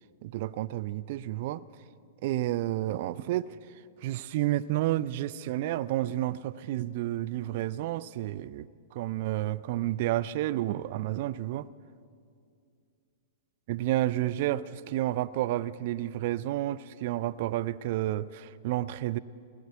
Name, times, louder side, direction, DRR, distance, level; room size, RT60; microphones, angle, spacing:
voice 1, 0.2-1.7 2.2-3.5 4.0-11.7 13.7-19.2, right 14 dB, 55° right, 16 dB, 0.4 m, -30 dB
19.5 x 9.3 x 8.0 m, 2.4 s
hypercardioid pair, 110°, 0 cm